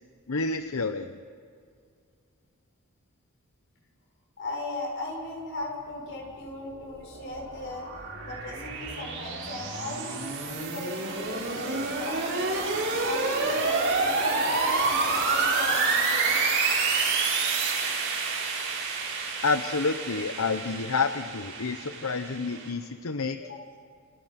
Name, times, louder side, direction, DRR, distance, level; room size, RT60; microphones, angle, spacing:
voice 1, 0.3-1.2 19.4-23.4, left 4 dB, 80° left, 9 dB, 0.9 m, -29 dB
voice 2, 4.4-7.9 8.2-12.6 13.0-16.4 23.4-23.6, left 2 dB, 60° left, -1 dB, 7.0 m, -37 dB
sound 1, 6.6-22.7, right 3 dB, 60° right, 7.0 m, -28 dB
30.0 x 29.5 x 5.9 m, 2.3 s
head